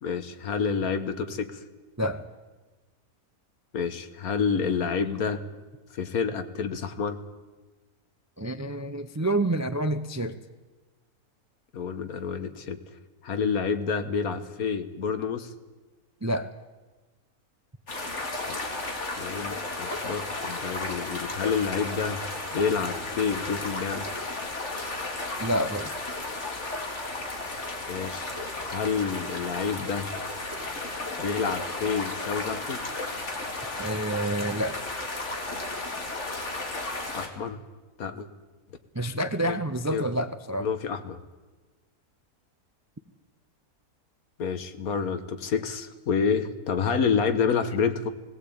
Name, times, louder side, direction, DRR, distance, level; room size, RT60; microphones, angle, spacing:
voice 1, 0.0-1.6 3.7-5.4 5.9-7.2 11.7-12.8 13.2-15.5 18.5-18.8 19.2-22.2 22.5-24.1 27.9-28.3 28.7-30.1 31.2-32.8 37.1-37.6 38.0-38.3 39.4-39.6 39.9-40.1 40.6-41.2 44.4-48.1, left 6 dB, 75° left, 10 dB, 1.6 m, -28 dB
voice 2, 8.4-10.4 16.2-16.5 25.4-25.9 33.8-34.8 39.0-40.6, right 1 dB, 25° right, 10 dB, 0.4 m, -28 dB
sound 1, 17.9-37.3, left 2 dB, 50° left, 2.5 m, -34 dB
18.5 x 17.0 x 8.6 m, 1.2 s
omnidirectional pair, 1.6 m